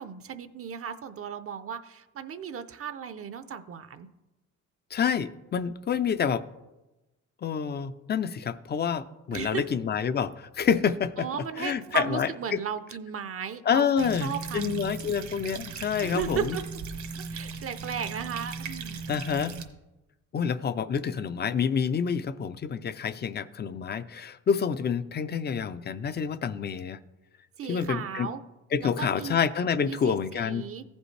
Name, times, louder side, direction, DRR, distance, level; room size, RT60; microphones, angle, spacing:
voice 1, 0.0-4.1 9.3-9.6 11.2-14.8 16.0-16.6 17.3-19.0 27.6-28.4 28.8-29.4 29.8-30.8, right 8 dB, 50° right, 11 dB, 0.6 m, -35 dB
voice 2, 4.9-6.4 7.4-11.3 11.6-12.6 13.7-16.6 19.1-19.5 20.3-27.0 27.7-28.3 28.7-30.7, left 7 dB, 35° left, 14 dB, 0.5 m, -28 dB
sound 1, 14.0-19.6, right 4 dB, 70° right, 1.2 m, -38 dB
14.5 x 5.3 x 3.3 m, 1.0 s
cardioid pair, 90°, 30 cm